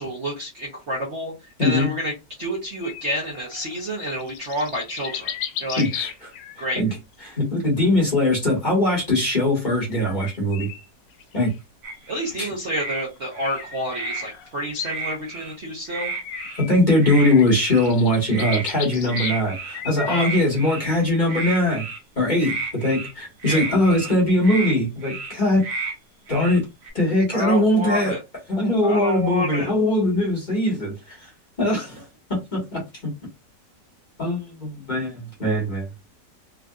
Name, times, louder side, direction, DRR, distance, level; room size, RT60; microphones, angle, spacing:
voice 1, 0.0-1.3 1.6-5.3 5.6-5.8 6.6-6.8 12.1-16.1 20.1-20.3 23.4-23.6 27.3-28.2 28.8-29.7, right 1 dB, 50° right, -3 dB, 1.0 m, -29 dB
voice 2, 1.6-1.9 5.8-6.1 6.6-6.9 7.2-10.7 11.3-11.5 12.3-12.5 16.6-21.8 22.2-25.6 26.3-26.6 26.9-28.1 28.5-31.3 31.6-32.0 32.3-33.1 34.2-35.8, left 1 dB, 30° left, -3 dB, 1.4 m, -21 dB
sound 1, 2.8-6.7 7.1-7.4 9.9-11.6 13.2-14.9 16.2-16.7 17.1-19.4 19.7-20.6, left 8 dB, 90° left, 1.3 m, -35 dB
sound 2, 11.8-12.3 12.7-13.0 13.3-14.2 14.8-15.5 15.9-16.6 17.0-17.3 17.6-17.9 18.3-18.6 19.1-19.8 20.1-20.9 21.3-22.0 22.4-23.1 23.4-24.1 24.4-24.7 25.0-25.3 25.6-25.9 26.3-26.9, right 3 dB, 70° right, 1.6 m, -31 dB
3.7 x 2.6 x 2.3 m, 0.24 s
omnidirectional pair, 1.9 m